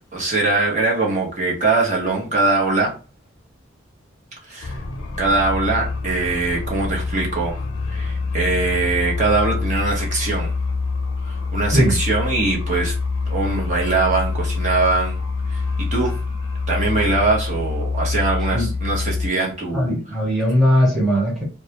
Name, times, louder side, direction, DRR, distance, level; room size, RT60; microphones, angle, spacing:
voice 1, 0.1-2.9 4.4-4.8 5.2-7.6 7.9-10.5 11.3-12.9 13.3-15.2 15.5-15.6 15.9-16.2 16.7-19.9, right 3 dB, 35° right, -3 dB, 0.8 m, -22 dB
sound 1, 4.6-19.3, left 4 dB, 90° left, 0.5 m, -25 dB
voice 2, 19.7-21.4, equal, ahead, -4 dB, 0.8 m, -18 dB
2.3 x 2.0 x 2.8 m, 0.35 s
head